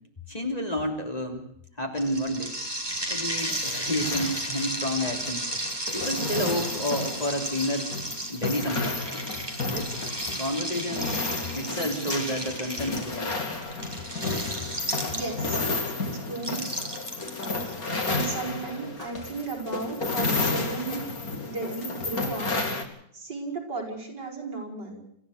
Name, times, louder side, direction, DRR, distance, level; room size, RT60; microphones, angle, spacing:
voice 1, 0.3-1.4 1.8-2.5 3.1-5.4 5.9-7.9 8.3-9.0 9.7-9.9 10.3-11.2 11.5-13.4, equal, 20° left, 2 dB, 3.4 m, -30 dB
sound 1, 2.0-15.6 16.4-18.2, right 1 dB, 15° right, 4.0 m, -34 dB
sound 2, 2.9-22.8, left 3 dB, 55° left, 3.3 m, -32 dB
voice 2, 14.9-15.6 16.1-16.9 17.5-17.8 18.1-21.1 21.4-22.5 23.1-25.0, right 3 dB, 70° right, 0 dB, 6.5 m, -35 dB
27.5 x 15.0 x 6.6 m, 0.70 s
omnidirectional pair, 1.9 m